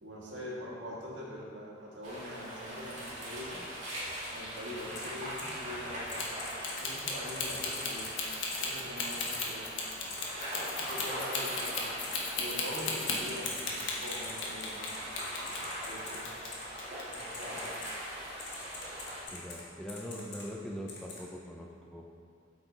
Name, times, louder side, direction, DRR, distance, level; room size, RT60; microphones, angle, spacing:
voice 1, 0.0-3.7 4.3-6.2 6.8-8.1 8.6-9.7 10.8-11.8 12.3-14.9 15.4-16.3 17.0-17.7, equal, 75° right, -5 dB, 1.9 m, -43 dB
sound 1, 2.0-19.2, equal, 40° right, 2.0 m, -41 dB
Typing, 4.9-5.1 5.4-5.5 6.1-6.8 7.3-8.1 8.5-8.6 9.1-9.4 10.1-10.2 11.0-11.1 11.6-11.7 12.0-12.1 12.8-13.6 14.1-16.2 16.5-16.6 17.1-17.9 18.4-19.6 19.9-20.4 20.9-21.2, left 4 dB, 60° left, 1.5 m, -44 dB
sound 2, 6.1-14.9 15.2-16.5 16.8-17.0, left 4 dB, 85° left, 1.3 m, -35 dB
voice 2, 19.3-22.1, equal, 5° left, 0 dB, 0.4 m, -42 dB
8.1 x 6.4 x 4.0 m, 2.3 s
head